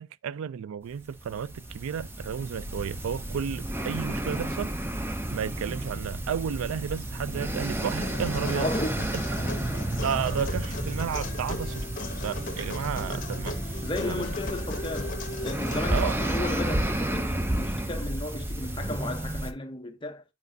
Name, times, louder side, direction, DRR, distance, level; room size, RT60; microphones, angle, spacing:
voice 1, 0.0-4.7 5.3-8.7 10.0-11.9 12.2-13.6 14.0-14.2 15.9-16.2, right 8 dB, 90° right, 0.3 m, -32 dB
sound 1, 1.0-19.5, right 1 dB, 10° right, 0.4 m, -31 dB
Human voice, 8.0-16.0, left 2 dB, 40° left, 1.0 m, -38 dB
voice 2, 8.5-9.1 9.4-10.0 13.8-20.2, left 2 dB, 25° left, 0.7 m, -34 dB
9.4 x 4.2 x 2.6 m
head